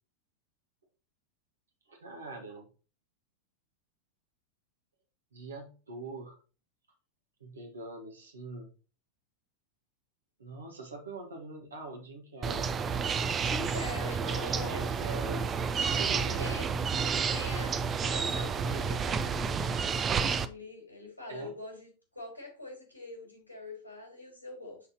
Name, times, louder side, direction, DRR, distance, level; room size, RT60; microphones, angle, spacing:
voice 1, 1.9-2.7 5.3-6.4 7.4-8.7 10.4-12.7 14.4-15.5 15.8-16.6 21.3-21.5, right 2 dB, 70° right, 3 dB, 1.6 m, -43 dB
sound 1, 12.4-20.5, right 5 dB, 25° right, 0.5 m, -30 dB
voice 2, 13.4-14.9 16.4-16.7 17.3-24.8, left 2 dB, 90° left, 0 dB, 3.7 m, -43 dB
10.5 x 4.2 x 2.9 m, 0.36 s
figure-of-eight pair, 90°, 0 cm